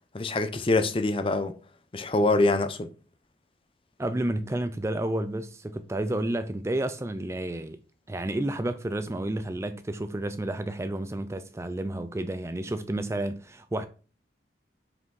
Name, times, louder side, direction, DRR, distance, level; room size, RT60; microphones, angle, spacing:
voice 1, 0.1-1.5 1.9-2.9, left 2 dB, 30° left, 0.6 m, -24 dB
voice 2, 4.0-7.8 8.1-13.9, right 1 dB, 15° right, 0.3 m, -31 dB
5.7 x 5.0 x 4.7 m
head